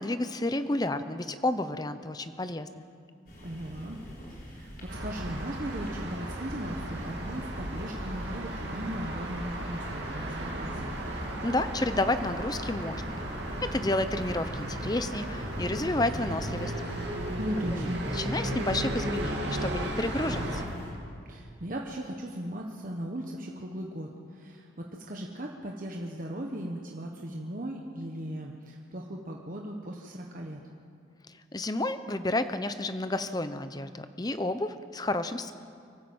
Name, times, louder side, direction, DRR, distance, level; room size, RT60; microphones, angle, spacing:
voice 1, 0.0-2.8 11.4-13.2 13.6-16.7 17.7-20.6 31.5-35.5, left 2 dB, 20° left, 11 dB, 0.7 m, -31 dB
sound 1, 3.3-20.9, equal, 50° left, 5.3 m, -44 dB
voice 2, 3.4-4.7 5.0-10.9 17.4-18.0 21.3-30.6, right 1 dB, 45° right, 0 dB, 1.3 m, -37 dB
sound 2, 4.9-20.6, right 1 dB, 60° right, 2.8 m, -35 dB
24.5 x 13.0 x 8.0 m, 2.3 s
head